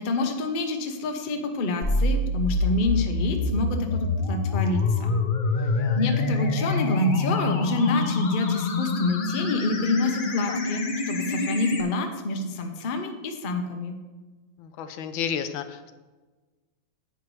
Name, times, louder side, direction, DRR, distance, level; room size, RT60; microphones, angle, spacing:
voice 1, 0.0-5.2 6.0-14.0, left 2 dB, 40° left, 4 dB, 0.7 m, -27 dB
sound 1, 1.8-11.8, left 3 dB, 70° left, 0.4 m, -26 dB
voice 2, 5.6-6.0 10.5-10.6 14.6-15.9, left 8 dB, 85° left, 9 dB, 1.5 m, -33 dB
10.0 x 9.2 x 3.2 m, 1.3 s
omnidirectional pair, 2.1 m